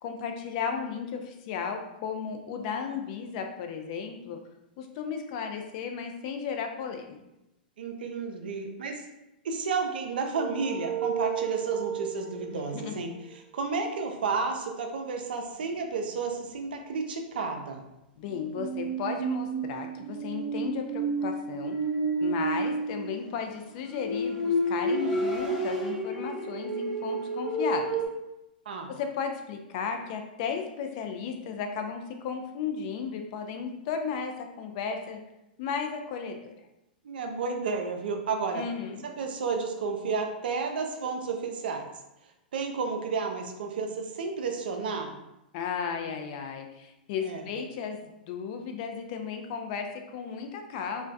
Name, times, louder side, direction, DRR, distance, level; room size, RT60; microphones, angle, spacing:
voice 1, 0.0-4.4 4.8-7.2 12.5-13.0 18.2-21.8 22.2-28.0 28.9-35.2 35.6-36.5 38.5-39.1 45.5-51.1, left 6 dB, 50° left, 4 dB, 0.4 m, -34 dB
voice 2, 7.8-9.0 9.4-17.8 28.7-28.9 37.0-38.6 39.0-41.8 42.5-45.1 47.2-47.4, right 4 dB, 70° right, 4 dB, 0.4 m, -32 dB
sound 1, 10.3-13.1 18.3-23.3 23.8-28.1, right 2 dB, 15° right, 0.6 m, -31 dB
Car, 23.4-25.9, left 2 dB, 5° left, 0.9 m, -42 dB
2.2 x 2.1 x 2.5 m, 0.92 s
hypercardioid pair, 110°, 5 cm